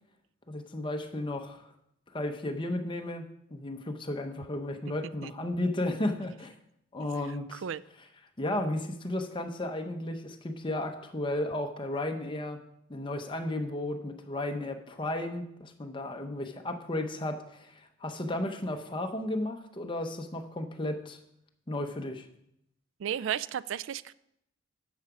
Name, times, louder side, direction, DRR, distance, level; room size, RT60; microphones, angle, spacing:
voice 1, 0.5-1.7 2.1-6.5 6.9-7.6 8.4-12.6 12.9-21.2 21.7-22.3, left 1 dB, 25° left, 0.8 m, -34 dB
voice 2, 7.5-7.8 23.0-24.1, right 9 dB, 60° right, 0.3 m, -33 dB
10.5 x 6.9 x 4.9 m
head